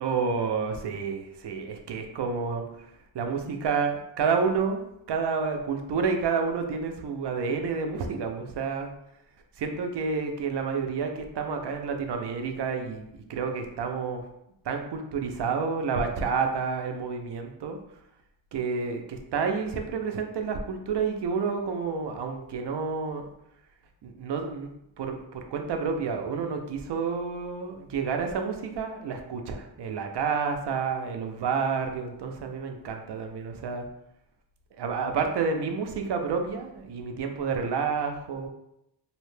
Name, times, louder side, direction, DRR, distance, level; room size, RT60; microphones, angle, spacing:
voice 1, 0.0-2.6 3.1-8.9 9.6-13.0 13.3-14.2 14.7-17.8 18.5-23.2 24.0-24.7 25.0-33.9 34.8-38.5, right 5 dB, 70° right, 4 dB, 0.5 m, -29 dB
2.7 x 2.1 x 3.1 m, 0.82 s
wide cardioid pair, 150°, 43 cm